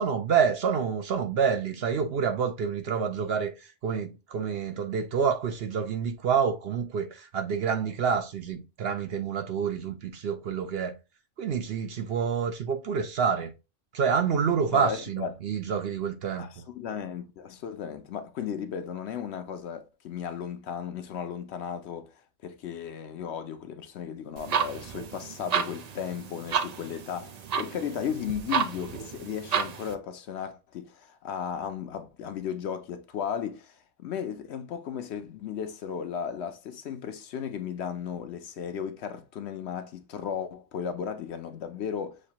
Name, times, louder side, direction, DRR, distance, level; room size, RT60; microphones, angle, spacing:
voice 1, 0.0-3.5 3.8-10.9 11.4-13.5 13.9-16.5, right 6 dB, 60° right, 0.7 m, -28 dB
voice 2, 14.7-15.3 16.4-42.2, left 8 dB, 65° left, 0.8 m, -35 dB
sound 1, 24.4-29.9, right 7 dB, 80° right, 0.3 m, -32 dB
6.4 x 2.6 x 2.8 m
omnidirectional pair, 1.3 m